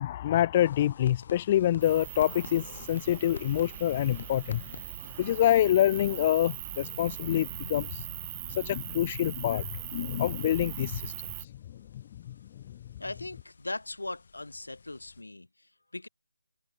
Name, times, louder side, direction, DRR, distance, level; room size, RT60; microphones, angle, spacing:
voice 1, 0.0-4.8 5.2-8.0 8.5-11.1 11.4-11.5, left 12 dB, 20° left, 0.7 m, -26 dB
sound 1, 0.5-15.2, left 5 dB, 40° left, 4.5 m, -52 dB
sound 2, 1.8-11.5, right 19 dB, 15° right, 3.0 m, -41 dB
voice 2, 13.0-16.1, left 2 dB, 85° left, 3.8 m, -39 dB
figure-of-eight pair, 165°, 0 cm